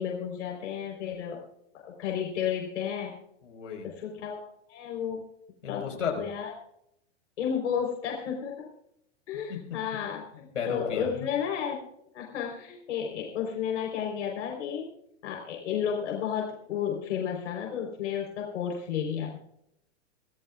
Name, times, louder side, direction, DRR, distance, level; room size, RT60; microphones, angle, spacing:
voice 1, 0.0-1.4 1.8-3.1 3.8-5.2 5.7-5.9 6.2-6.5 7.4-8.7 9.3-11.8 12.1-14.9 15.2-19.4, left 8 dB, 75° left, 0 dB, 4.1 m, -32 dB
voice 2, 3.4-3.9 5.6-6.3 9.5-9.6 10.3-11.3, left 6 dB, 90° left, 1 dB, 5.1 m, -34 dB
26.0 x 15.0 x 2.4 m, 0.76 s
hypercardioid pair, 115°, 36 cm